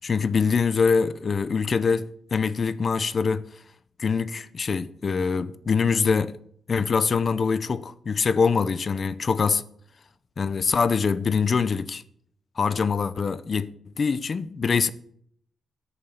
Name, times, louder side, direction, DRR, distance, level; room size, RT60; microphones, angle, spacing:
voice 1, 0.0-3.5 4.0-6.3 6.7-9.6 10.4-12.0 12.6-13.7 14.0-14.9, left 5 dB, 35° left, 0.7 m, -24 dB
13.0 x 6.9 x 7.0 m
wide cardioid pair, 150°, 0 cm